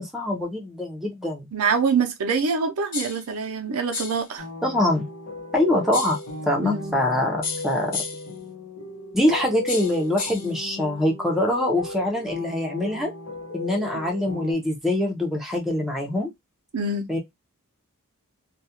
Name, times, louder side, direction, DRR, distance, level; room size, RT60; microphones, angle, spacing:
voice 1, 0.0-1.5 4.6-5.0 5.5-6.2 6.4-8.0 9.1-13.1 13.5-16.3 17.1-17.2, left 1 dB, ahead, 0.5 m, -24 dB
voice 2, 1.5-4.4 6.6-6.9 16.7-17.1, right 5 dB, 75° right, 0.5 m, -25 dB
sound 1, 2.9-3.3 3.9-4.3 5.9-6.3 7.4-8.3 9.7-10.5, left 4 dB, 40° left, 0.5 m, -32 dB
sound 2, 4.4-14.5, left 2 dB, 80° left, 0.8 m, -36 dB
2.3 x 2.1 x 2.7 m
head